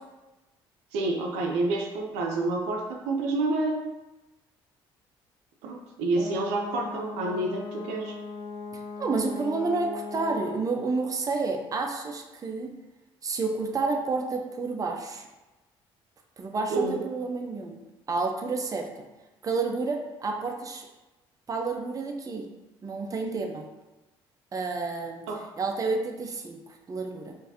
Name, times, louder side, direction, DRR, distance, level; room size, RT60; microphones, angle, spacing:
voice 1, 0.9-3.8 5.6-8.2 16.7-17.0 25.3-25.4, right 2 dB, 85° right, 1 dB, 0.5 m, -28 dB
Brass instrument, 6.1-10.6, left 4 dB, 40° left, 0.6 m, -38 dB
voice 2, 8.7-12.7 13.2-15.3 16.4-17.8 18.1-18.9 19.4-20.9 21.5-22.4 22.8-23.6 24.5-25.2 25.6-27.3, right 3 dB, 30° right, 2 dB, 0.6 m, -30 dB
4.5 x 2.6 x 2.7 m, 1.1 s
supercardioid pair, 75°, 11 cm